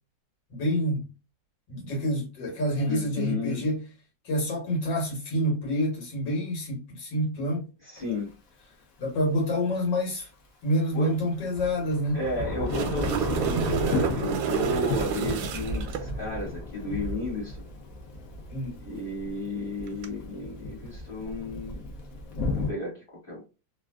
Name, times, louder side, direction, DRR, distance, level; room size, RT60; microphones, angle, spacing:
voice 1, 0.5-1.1 1.7-3.8 4.3-7.7 9.0-10.3 10.6-12.2 18.5-18.8, equal, 75° left, 1.9 m, -27 dB
voice 2, 2.9-3.6 7.8-8.3 10.9-11.2 12.1-17.7 18.8-21.8 22.5-23.0 23.2-23.5, left 2 dB, 30° left, 1.8 m, -33 dB
Thunder / Rain, 8.0-8.1 11.0-22.7, left 3 dB, 60° left, 1.1 m, -34 dB
sound 1, 12.4-16.0 19.9-20.0, right 9 dB, 90° right, 1.3 m, -29 dB
3.5 x 2.6 x 2.2 m
omnidirectional pair, 2.0 m